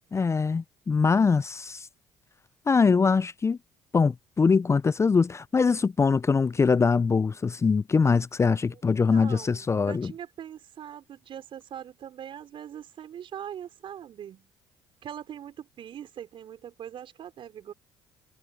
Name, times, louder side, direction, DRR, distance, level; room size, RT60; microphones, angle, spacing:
voice 1, 0.1-1.9 2.7-3.6 3.9-10.1, left 5 dB, 25° left, 0.6 m, -23 dB
voice 2, 9.1-14.5 15.0-17.7, right 9 dB, 55° right, 4.0 m, -42 dB
hypercardioid pair, 55°, 10 cm